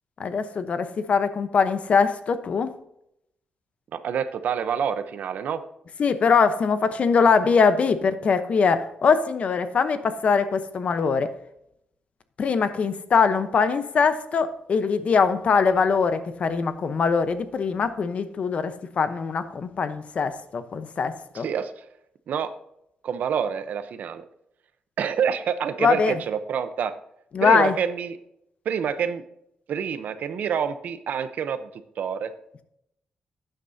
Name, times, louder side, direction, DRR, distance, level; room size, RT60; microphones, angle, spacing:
voice 1, 0.2-2.7 6.0-11.3 12.4-21.5 25.8-26.2 27.3-27.7, left 5 dB, 50° left, 10 dB, 0.9 m, -22 dB
voice 2, 3.9-5.6 21.3-21.7 22.3-22.5 23.0-24.2 25.0-26.9 27.4-28.2 28.6-29.2 29.7-31.7 32.0-32.3, right 7 dB, 70° right, 11 dB, 0.8 m, -27 dB
12.0 x 9.1 x 2.8 m, 0.76 s
cardioid pair, 125°, 3 cm